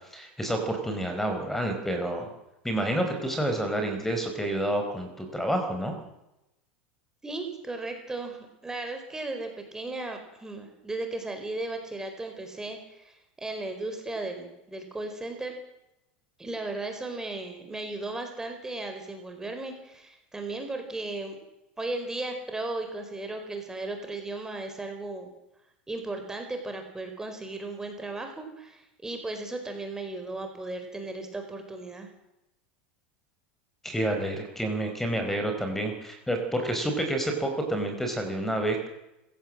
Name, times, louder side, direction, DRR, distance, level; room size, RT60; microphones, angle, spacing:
voice 1, 0.1-2.3 2.6-5.9 33.8-38.9, right 1 dB, 5° left, 5 dB, 4.6 m, -29 dB
voice 2, 7.2-15.6 16.4-21.4 21.8-25.3 25.9-32.1, right 2 dB, 10° right, 5 dB, 4.5 m, -36 dB
26.5 x 16.0 x 7.6 m, 0.90 s
supercardioid pair, 120°, 5 cm